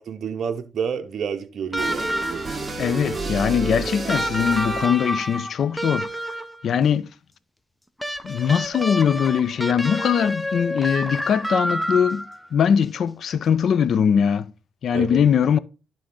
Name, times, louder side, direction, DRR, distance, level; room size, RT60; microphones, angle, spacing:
voice 1, 0.0-2.4 14.9-15.1, right 7 dB, 55° right, 0.6 m, -29 dB
sound 1, 1.7-2.7 4.1-6.7 8.0-12.5 13.8-13.9, equal, 5° left, 0.6 m, -28 dB
sound 2, 1.8-5.2, right 3 dB, 25° right, 1.1 m, -30 dB
voice 2, 2.8-6.1 6.6-7.1 8.2-12.3 12.5-14.5 14.8-15.6, left 7 dB, 60° left, 0.4 m, -21 dB
11.0 x 3.8 x 3.7 m
cardioid pair, 90°, 0 cm